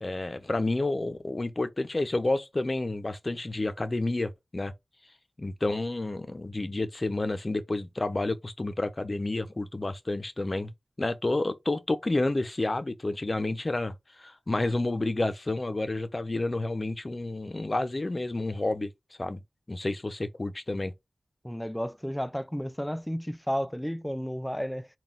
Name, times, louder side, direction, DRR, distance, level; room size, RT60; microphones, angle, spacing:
voice 1, 0.0-4.7 5.4-10.7 11.0-18.9 19.2-19.4 19.7-20.9, left 2 dB, 40° left, 0.6 m, -30 dB
voice 2, 21.4-24.9, equal, 5° left, 0.3 m, -32 dB
4.0 x 2.3 x 3.6 m
wide cardioid pair, 75°, 0 cm